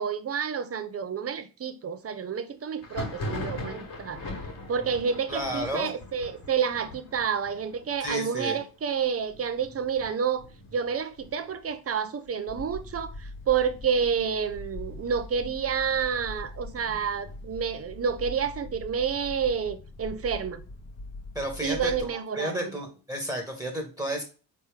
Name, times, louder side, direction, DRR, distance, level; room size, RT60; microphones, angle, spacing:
voice 1, 0.0-4.2 4.7-10.4 10.7-20.6 21.6-22.7, right 6 dB, 35° right, 0.6 m, -29 dB
Thunder, 2.8-12.3 12.6-13.2 13.5-14.5 14.9-16.6, left 2 dB, 55° left, 1.7 m, -41 dB
voice 2, 5.3-5.9 8.0-8.6 21.3-24.2, equal, 10° right, 1.5 m, -32 dB
sound 1, 12.5-22.1, left 2 dB, 35° left, 1.1 m, -42 dB
4.2 x 3.2 x 3.5 m
supercardioid pair, 65°, 42 cm